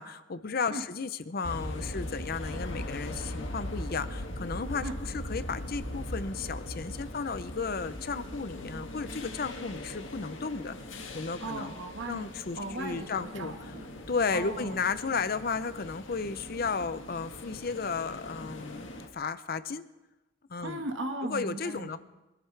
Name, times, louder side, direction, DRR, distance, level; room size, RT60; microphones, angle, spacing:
voice 1, 0.0-4.9 5.1-10.8 11.1-11.7 12.1-13.5 14.1-19.8 20.5-20.8 21.3-22.0, left 4 dB, 50° left, 13 dB, 0.6 m, -34 dB
sound 1, 1.4-19.1, left 1 dB, 80° left, 1.7 m, -40 dB
voice 2, 11.4-12.3 12.6-13.9 14.3-14.8 20.6-22.0, right 2 dB, 70° right, 4 dB, 1.6 m, -37 dB
24.5 x 13.0 x 3.4 m, 1.0 s
head